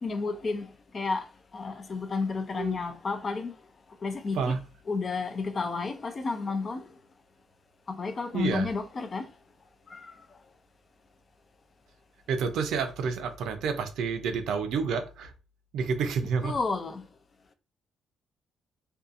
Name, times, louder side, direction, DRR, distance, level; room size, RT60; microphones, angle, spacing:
voice 1, 0.0-0.7 0.9-1.2 1.5-3.5 4.0-4.6 4.9-6.8 7.9-9.3 9.9-10.0 16.4-17.0, left 4 dB, 40° left, 0.4 m, -31 dB
voice 2, 8.3-8.7 12.3-15.3 15.7-16.5, right 5 dB, 80° right, 0.5 m, -29 dB
2.6 x 2.3 x 2.5 m
cardioid pair, 90°, 0 cm